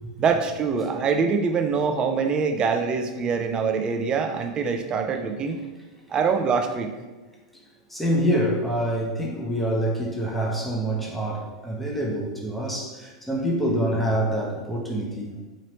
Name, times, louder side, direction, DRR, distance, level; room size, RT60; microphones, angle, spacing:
voice 1, 0.2-5.6 6.1-6.9, right 5 dB, 30° right, 5 dB, 0.4 m, -24 dB
voice 2, 7.9-15.3, right 1 dB, 5° left, -3 dB, 0.7 m, -26 dB
3.1 x 2.9 x 2.9 m, 1.2 s
hypercardioid pair, 100°, 3 cm